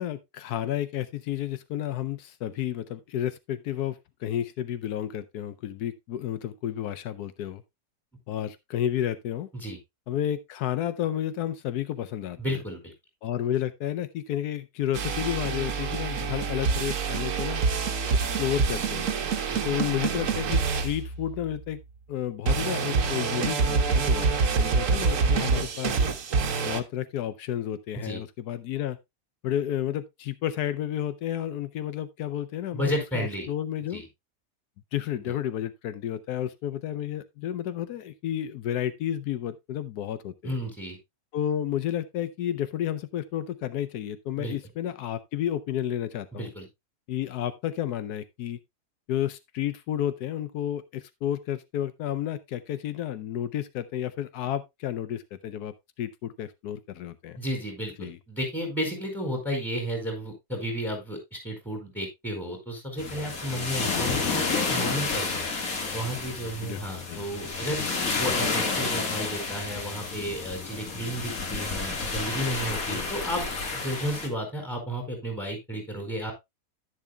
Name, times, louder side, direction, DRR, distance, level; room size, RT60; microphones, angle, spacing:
voice 1, 0.0-7.6 8.3-9.5 10.1-12.6 13.2-17.6 18.1-19.1 19.6-21.8 22.1-26.0 26.6-29.0 29.4-34.0 34.9-40.6 41.3-46.5 47.1-48.6 49.1-57.4 58.0-58.2 63.9-64.2 66.6-67.3 67.8-68.0 72.9-73.1, left 11 dB, 85° left, 1.2 m, -31 dB
voice 2, 12.4-12.9 19.5-19.6 28.0-28.2 32.7-33.5 33.9-34.1 40.4-41.0 44.4-44.6 46.3-46.7 57.4-65.5 65.9-67.8 68.2-76.3, equal, ahead, 4.7 m, -33 dB
sound 1, 14.9-21.6 22.5-26.8, right 5 dB, 60° right, 1.3 m, -26 dB
sound 2, 63.0-74.3, left 4 dB, 65° left, 2.2 m, -30 dB
10.5 x 10.5 x 2.2 m
omnidirectional pair, 1.6 m